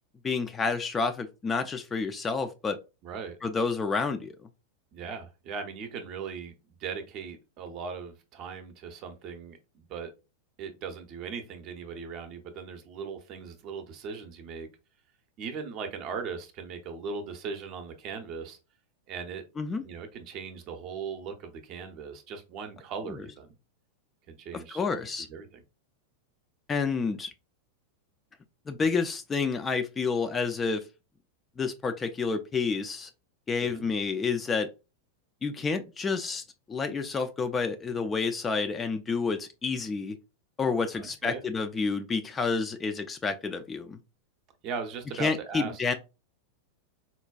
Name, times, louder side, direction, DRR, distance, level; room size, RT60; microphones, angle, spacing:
voice 1, 0.2-2.8 3.4-4.4 19.6-19.8 24.5-25.3 26.7-27.3 28.7-30.8 31.6-33.1 33.5-34.7 35.4-40.2 40.6-44.0 45.2-45.9, left 4 dB, 20° left, 0.3 m, -29 dB
voice 2, 3.0-3.4 4.9-10.1 10.6-14.7 15.4-18.6 19.1-19.4 19.8-23.5 24.3-24.8 25.3-25.6 33.6-33.9 40.9-41.4 44.6-45.8, right 5 dB, 40° right, 0.6 m, -39 dB
4.0 x 2.2 x 2.2 m
figure-of-eight pair, 90°, 0 cm